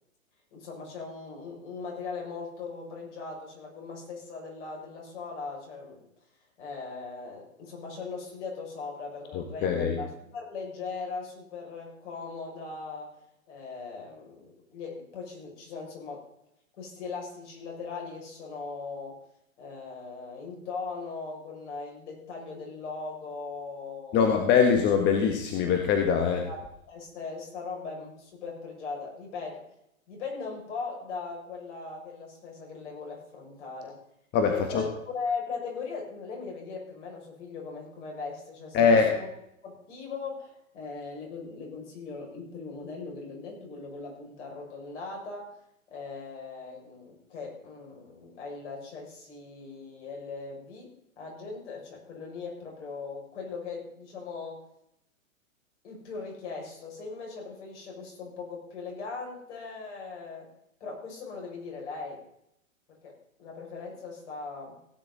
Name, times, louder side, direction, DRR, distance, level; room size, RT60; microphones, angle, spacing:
voice 1, 0.5-6.1 6.6-13.1 13.5-16.2 16.8-19.2 19.6-24.3 26.2-29.6 30.1-34.0 34.5-39.3 39.6-45.6 45.9-54.6 55.8-60.5 60.8-62.2 63.0-64.8, left 4 dB, 55° left, -1 dB, 6.7 m, -39 dB
voice 2, 9.3-10.0 24.1-26.4 34.3-34.8 38.7-39.1, left 6 dB, 25° left, 4 dB, 1.5 m, -23 dB
17.0 x 9.8 x 4.1 m, 0.77 s
hypercardioid pair, 135°, 41 cm